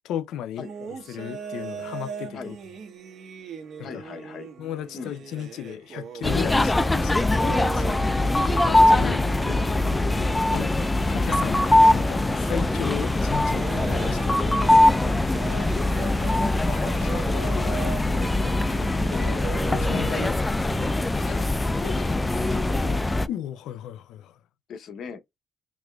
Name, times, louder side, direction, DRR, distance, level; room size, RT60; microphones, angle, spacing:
voice 1, 0.0-2.6 3.8-4.0 4.6-8.1 8.6-9.7 10.5-10.7 11.1-14.9 19.7-20.1 23.3-24.4, left 10 dB, 85° left, 0.5 m, -35 dB
sound 1, 0.6-20.3, right 6 dB, 65° right, 1.4 m, -39 dB
voice 2, 3.8-4.5 4.9-5.1 9.0-9.2 9.4-9.6 10.5-10.7 16.7-20.4 20.8-21.5 21.8-23.0 24.7-25.2, left 6 dB, 65° left, 0.9 m, -38 dB
sound 2, 6.2-23.3, left 2 dB, 15° left, 0.4 m, -22 dB
4.1 x 3.1 x 2.3 m
cardioid pair, 90°, 0 cm